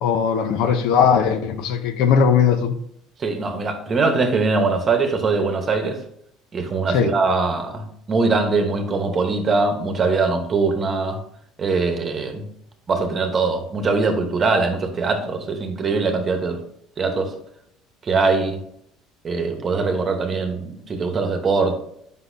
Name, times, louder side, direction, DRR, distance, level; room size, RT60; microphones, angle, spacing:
voice 1, 0.0-2.8 6.9-7.1, left 7 dB, 75° left, 0.6 m, -18 dB
voice 2, 3.2-6.0 6.5-11.2 11.6-12.5 12.9-16.6 17.0-17.3 18.0-18.6 19.2-21.8, right 4 dB, 30° right, 1.0 m, -22 dB
8.0 x 5.4 x 2.7 m
cardioid pair, 125°, 0 cm